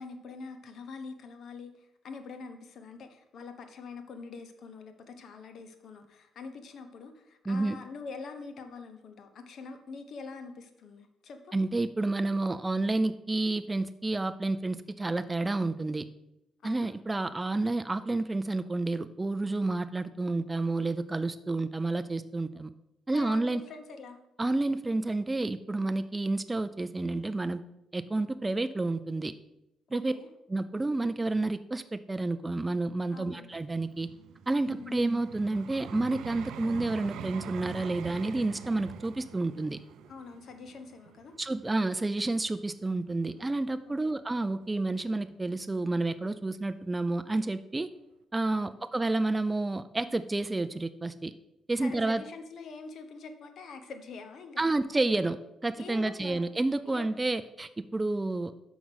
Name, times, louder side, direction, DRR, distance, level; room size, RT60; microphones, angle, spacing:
voice 1, 0.0-11.5 16.6-17.0 23.1-24.2 29.9-30.3 33.1-33.5 34.6-35.1 40.1-41.4 43.9-44.2 48.6-48.7 51.8-54.7 55.8-56.5 56.8-57.1, left 4 dB, 60° left, 7 dB, 1.0 m, -45 dB
voice 2, 7.5-7.8 11.5-16.0 16.6-22.7 23.1-23.6 24.4-27.6 27.9-29.3 29.9-30.1 30.5-34.1 34.5-39.8 41.4-47.9 48.3-51.3 51.7-52.2 54.6-58.5, right 2 dB, 20° right, 10 dB, 0.4 m, -30 dB
Vehicle, 33.5-42.6 43.2-43.4, right 9 dB, 80° right, 0.4 m, -44 dB
6.0 x 5.3 x 6.2 m, 0.86 s
cardioid pair, 90°, 0 cm